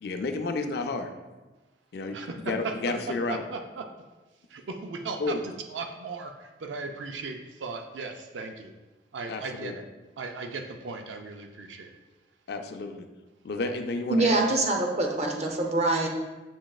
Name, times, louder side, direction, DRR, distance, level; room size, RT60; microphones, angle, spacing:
voice 1, 0.0-1.1 1.9-2.2 2.5-3.4 5.2-5.4 9.3-9.7 12.5-13.1 13.4-14.4, left 3 dB, 60° left, 6 dB, 0.4 m, -31 dB
voice 2, 2.1-3.9 4.5-8.7 9.1-9.8 10.2-11.9, right 4 dB, 85° right, 5 dB, 0.4 m, -37 dB
voice 3, 14.1-16.1, right 2 dB, 35° right, 1 dB, 0.6 m, -24 dB
7.3 x 3.0 x 2.3 m, 1.2 s
head